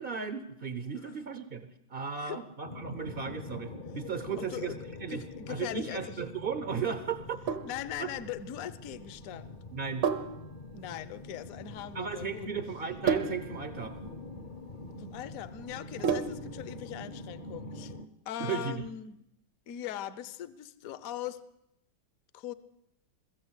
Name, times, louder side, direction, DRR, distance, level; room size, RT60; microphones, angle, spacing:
voice 1, 0.0-4.7 5.0-7.4 8.0-8.1 9.7-10.1 11.9-14.0 18.4-18.9, right 6 dB, 45° right, 10 dB, 0.7 m, -35 dB
sound 1, 2.6-18.1, left 2 dB, 35° left, 0.8 m, -45 dB
voice 2, 4.4-4.8 5.1-6.0 7.6-9.6 10.7-12.5 15.0-17.9 18.3-19.1 19.7-21.4 22.3-22.5, left 11 dB, 55° left, 16 dB, 1.1 m, -40 dB
Sink (filling or washing), 7.2-16.6, right 6 dB, 75° right, 1.9 m, -35 dB
22.5 x 14.0 x 8.1 m, 0.84 s
omnidirectional pair, 2.1 m